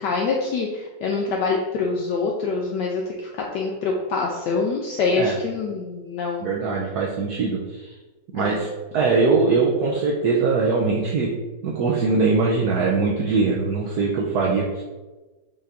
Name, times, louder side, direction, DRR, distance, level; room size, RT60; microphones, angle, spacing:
voice 1, 0.0-6.5 8.3-8.6, left 4 dB, 75° left, -1 dB, 1.1 m, -25 dB
voice 2, 6.4-7.9 8.3-8.7 8.9-11.3 11.6-14.8, right 4 dB, 70° right, -3 dB, 1.0 m, -21 dB
5.5 x 2.6 x 3.4 m, 1.2 s
omnidirectional pair, 2.1 m